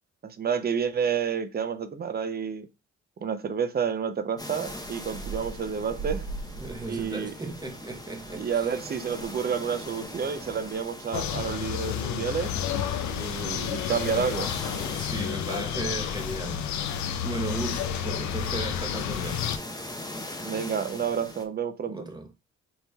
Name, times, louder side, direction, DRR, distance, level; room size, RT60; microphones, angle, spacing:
voice 1, 0.2-2.7 3.2-6.3 6.9-7.3 8.3-12.5 13.0-14.5 20.4-22.1, right 7 dB, 30° right, 0.6 m, -30 dB
sound 1, 4.4-21.4, left 1 dB, 10° left, 0.8 m, -42 dB
sound 2, 4.6-10.7, right 4 dB, 85° right, 2.2 m, -41 dB
voice 2, 6.6-8.7 14.8-19.6 21.9-22.3, right 2 dB, 15° right, 1.0 m, -36 dB
sound 3, 11.1-19.6, left 9 dB, 70° left, 0.6 m, -31 dB
5.5 x 3.0 x 2.3 m
cardioid pair, 90°, 30 cm